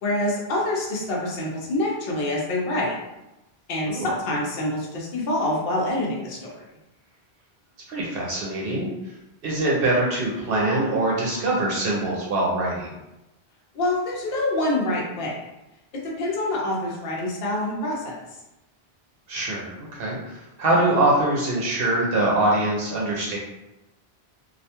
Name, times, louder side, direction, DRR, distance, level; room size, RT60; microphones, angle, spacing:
voice 1, 0.0-3.0 3.7-6.5 13.7-15.3 16.2-18.2, left 1 dB, 65° left, -3 dB, 0.8 m, -26 dB
voice 2, 7.9-9.1 9.4-13.0 19.3-23.4, right 2 dB, 70° right, -3 dB, 0.7 m, -23 dB
2.3 x 2.2 x 2.8 m, 0.96 s
omnidirectional pair, 1.1 m